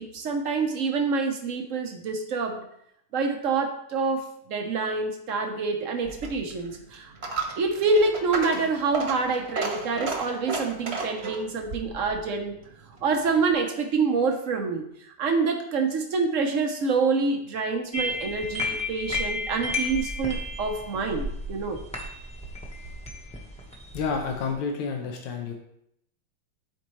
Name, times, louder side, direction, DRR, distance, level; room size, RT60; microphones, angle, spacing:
voice 1, 0.0-2.7 3.1-7.1 7.6-12.6 13.0-14.9 15.2-21.8, right 4 dB, 70° right, 4 dB, 0.7 m, -26 dB
Coin (dropping), 6.0-13.5, right 3 dB, 40° right, 1.0 m, -34 dB
sound 1, 17.9-24.5, left 2 dB, 5° left, 0.7 m, -33 dB
voice 2, 23.9-25.5, left 5 dB, 90° left, 2 dB, 1.8 m, -29 dB
12.5 x 4.5 x 3.1 m, 0.76 s
omnidirectional pair, 2.4 m